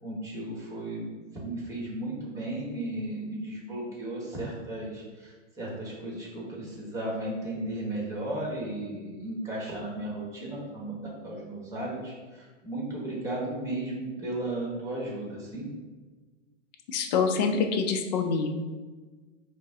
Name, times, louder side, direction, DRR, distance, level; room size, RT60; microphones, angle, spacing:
voice 1, 0.0-15.7, right 1 dB, 10° right, -4 dB, 1.0 m, -35 dB
voice 2, 16.9-18.5, left 5 dB, 35° left, 5 dB, 0.4 m, -26 dB
5.2 x 2.1 x 3.5 m, 1.3 s
hypercardioid pair, 135°, 38 cm